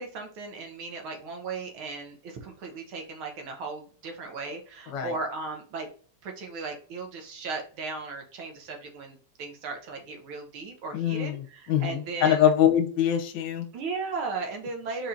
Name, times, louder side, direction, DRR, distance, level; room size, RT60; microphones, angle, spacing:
voice 1, 0.0-5.9 6.2-12.4 13.7-15.1, right 4 dB, 75° right, 3 dB, 1.9 m, -36 dB
voice 2, 10.9-11.4 11.7-13.7, left 10 dB, 65° left, 3 dB, 1.3 m, -23 dB
4.7 x 4.1 x 2.6 m, 0.43 s
omnidirectional pair, 2.3 m